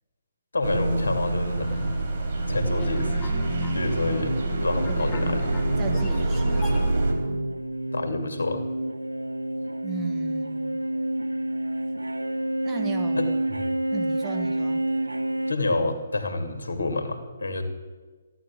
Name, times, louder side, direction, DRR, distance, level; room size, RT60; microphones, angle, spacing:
voice 1, 0.5-1.8 2.5-4.3 4.6-5.5 7.9-8.7 13.2-13.7 15.5-17.6, left 2 dB, 75° left, 6 dB, 2.4 m, -28 dB
sound 1, 0.6-7.1, right 2 dB, 55° right, 3.9 m, -26 dB
sound 2, 1.6-6.9, left 6 dB, 20° left, 1.6 m, -39 dB
sound 3, 2.5-15.5, right 1 dB, 85° right, 0.6 m, -29 dB
voice 2, 5.8-7.5 9.8-10.8 12.6-13.3 13.9-14.8, right 5 dB, 20° right, 4 dB, 1.6 m, -37 dB
14.5 x 11.5 x 8.4 m, 1.3 s
figure-of-eight pair, 135°, 0 cm